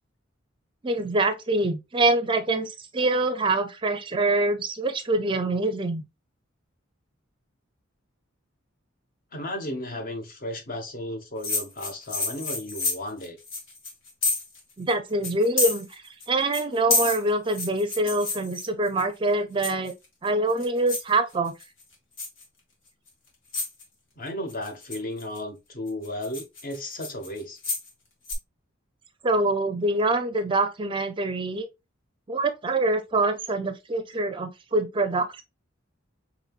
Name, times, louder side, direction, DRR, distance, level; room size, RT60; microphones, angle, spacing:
voice 1, 0.8-6.0 14.8-16.0 16.3-19.9 20.2-21.5 29.2-31.7 32.3-35.4, right 2 dB, 25° right, 0.5 m, -25 dB
voice 2, 9.3-13.4 24.2-27.6, left 1 dB, 45° left, 1.0 m, -34 dB
sound 1, 11.4-14.6 14.9-15.0 15.2-16.3 16.5-19.0 19.6-20.1 20.5-21.1 21.5-21.8 22.2-22.4 23.1-23.2 23.5-23.8 24.5-25.4 25.9-27.9 28.3-28.4, left 3 dB, 75° left, 1.7 m, -29 dB
5.3 x 2.9 x 2.4 m
head